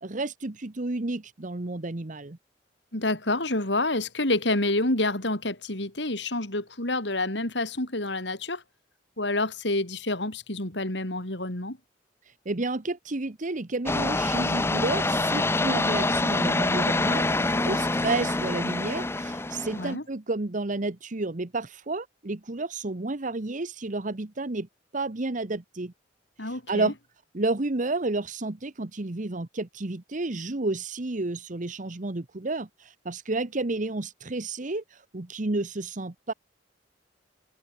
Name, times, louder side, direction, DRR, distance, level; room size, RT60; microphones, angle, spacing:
voice 1, 0.0-2.4 12.2-24.7 24.9-25.9 26.4-26.9 27.3-36.3, right 2 dB, 45° right, 1.1 m, -31 dB
voice 2, 2.9-8.6 9.2-11.8 19.7-20.0 26.4-26.9, left 2 dB, 70° left, 5.0 m, -28 dB
sound 1, 13.9-19.9, left 2 dB, 15° left, 0.6 m, -26 dB
head